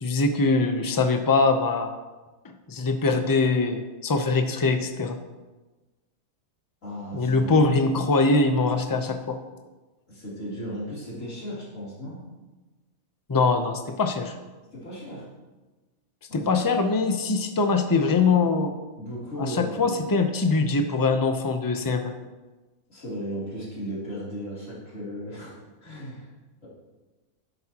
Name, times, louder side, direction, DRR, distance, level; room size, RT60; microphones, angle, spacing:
voice 1, 0.0-1.9 2.4-5.2 7.1-9.4 13.3-14.3 16.3-18.7 19.4-22.1, left 3 dB, 20° left, 6 dB, 0.5 m, -23 dB
voice 2, 6.8-7.6 10.1-12.2 14.7-15.3 16.3-16.5 19.0-19.8 22.9-25.6 25.8-26.3, equal, 65° left, -7 dB, 3.7 m, -35 dB
12.0 x 11.0 x 3.0 m, 1.2 s
omnidirectional pair, 1.5 m